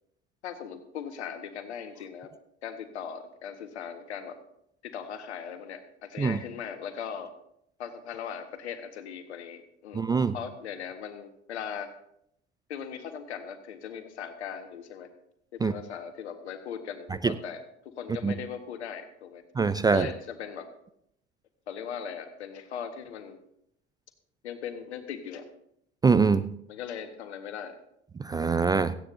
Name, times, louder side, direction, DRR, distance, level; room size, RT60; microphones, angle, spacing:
voice 1, 0.4-2.3 2.6-4.4 4.8-7.3 7.8-10.0 10.3-11.9 12.7-15.1 15.5-19.4 19.9-20.7 21.7-23.4 24.4-25.5 26.7-27.7, left 8 dB, 70° left, 8 dB, 1.6 m, -39 dB
voice 2, 9.9-10.3 15.6-15.7 17.2-17.3 18.2-18.3 19.6-20.1 26.0-26.5 28.2-29.0, right 5 dB, 10° right, 13 dB, 0.4 m, -23 dB
17.0 x 15.0 x 2.7 m, 0.73 s
figure-of-eight pair, 65°, 34 cm